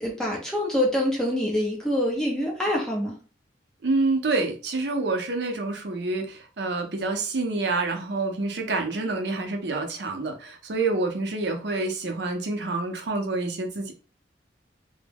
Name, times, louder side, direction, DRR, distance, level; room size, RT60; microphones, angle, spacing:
voice 1, 0.0-3.1, left 1 dB, 5° left, 0.6 m, -25 dB
voice 2, 3.8-13.9, right 3 dB, 75° right, 0.6 m, -27 dB
2.2 x 2.1 x 3.3 m
head